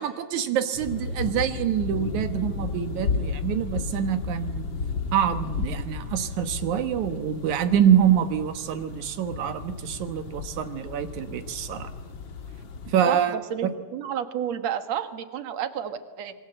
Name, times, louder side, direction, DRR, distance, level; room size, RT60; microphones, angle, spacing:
voice 1, 0.0-4.7 5.1-11.9 12.9-13.4, right 9 dB, 85° right, 9 dB, 2.6 m, -25 dB
sound 1, 0.7-13.0, left 4 dB, 45° left, 1.9 m, -33 dB
voice 2, 13.5-16.3, right 9 dB, 65° right, 10 dB, 2.6 m, -30 dB
26.5 x 23.0 x 7.8 m, 1.4 s
omnidirectional pair, 3.3 m